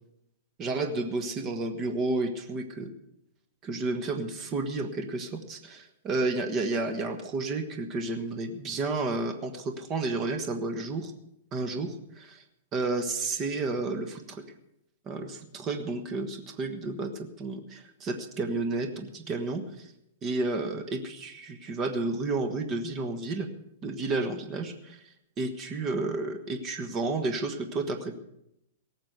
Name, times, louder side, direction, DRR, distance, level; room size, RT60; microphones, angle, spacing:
voice 1, 0.6-2.9 3.6-11.1 11.5-12.4 12.7-14.4 15.1-19.9 20.2-23.5 23.8-25.0 25.4-28.2, right 3 dB, 25° right, 7 dB, 1.3 m, -31 dB
18.0 x 7.3 x 8.1 m, 0.81 s
hypercardioid pair, 155°, 0 cm